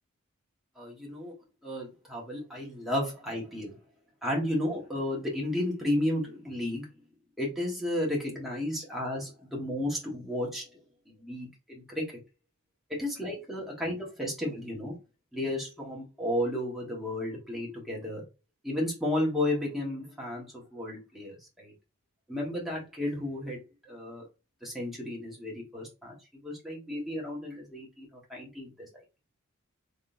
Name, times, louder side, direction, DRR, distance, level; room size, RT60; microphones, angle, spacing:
voice 1, 0.8-1.3 1.6-3.7 4.2-6.9 7.4-10.8 11.1-12.0 12.9-14.9 15.3-18.2 18.6-21.7 22.3-23.6 23.8-24.2 24.6-26.1 26.4-28.7, left 1 dB, ahead, 1.3 m, -33 dB
3.7 x 3.2 x 2.6 m
head